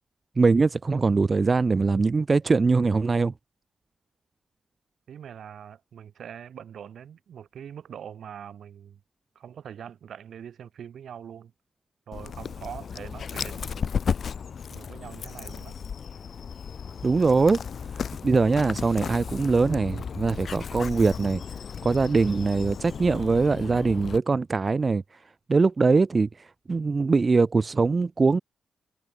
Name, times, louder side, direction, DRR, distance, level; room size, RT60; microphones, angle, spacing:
voice 1, 0.4-3.3 17.0-17.6 18.2-21.4 21.8-25.0 25.5-28.4, right 4 dB, 35° right, 0.8 m, -22 dB
voice 2, 5.1-9.0 9.3-11.5 12.1-14.0 14.7-15.8, right 8 dB, 75° right, 7.7 m, -43 dB
Dog, 12.1-24.2, left 6 dB, 60° left, 2.3 m, -34 dB
cardioid pair, 90°, 0 cm